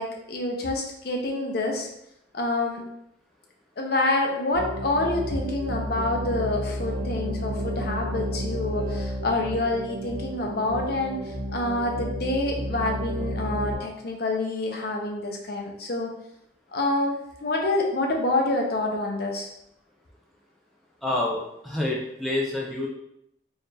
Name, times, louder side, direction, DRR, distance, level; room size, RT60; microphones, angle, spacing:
voice 1, 0.0-1.9 2.3-2.8 3.8-11.2 11.5-16.1 16.7-19.5, left 2 dB, 55° left, 1 dB, 0.6 m, -27 dB
sound 1, 4.5-13.8, equal, 90° right, 1.3 m, -31 dB
voice 2, 21.0-22.9, left 1 dB, ahead, -4 dB, 0.4 m, -28 dB
4.3 x 2.4 x 3.3 m, 0.79 s
head